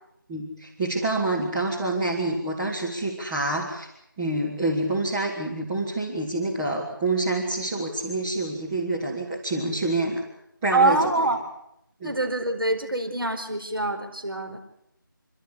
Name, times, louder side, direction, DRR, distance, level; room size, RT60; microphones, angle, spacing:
voice 1, 0.3-3.9 4.2-10.2 10.6-11.3 12.0-12.2, right 2 dB, 10° right, -6 dB, 1.2 m, -27 dB
voice 2, 10.7-11.4 12.0-14.6, right 2 dB, 80° right, 4 dB, 4.8 m, -24 dB
27.5 x 12.5 x 9.9 m, 0.79 s
figure-of-eight pair, 165°, 12 cm